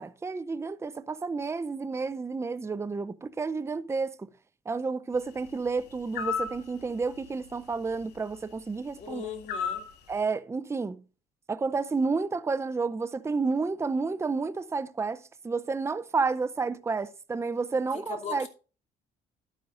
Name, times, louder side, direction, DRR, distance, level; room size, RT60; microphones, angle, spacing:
voice 1, 0.0-4.3 4.7-9.3 10.1-11.0 11.5-18.5, right 4 dB, 15° right, 0.6 m, -30 dB
sound 1, 6.1-6.6 9.5-9.9, left 6 dB, 75° left, 2.1 m, -30 dB
voice 2, 9.0-9.9 17.9-18.5, left 7 dB, 40° left, 2.9 m, -39 dB
11.5 x 9.9 x 2.5 m
cardioid pair, 110°, 17 cm